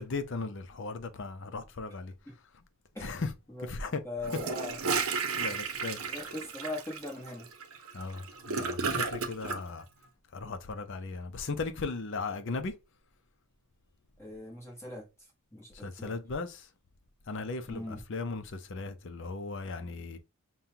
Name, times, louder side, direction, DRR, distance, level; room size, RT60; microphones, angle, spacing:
voice 1, 0.0-2.1 3.0-3.3 3.6-4.0 5.4-6.2 7.9-9.9 10.3-12.7 15.7-16.7 17.3-20.2, left 3 dB, 55° left, 0.6 m, -37 dB
voice 2, 4.0-4.8 6.1-7.5 14.2-15.1 15.5-16.1 17.7-18.0, left 2 dB, 10° left, 1.1 m, -40 dB
Gurgling / Toilet flush, 4.2-9.6, right 5 dB, 70° right, 0.7 m, -33 dB
5.4 x 2.2 x 2.8 m
head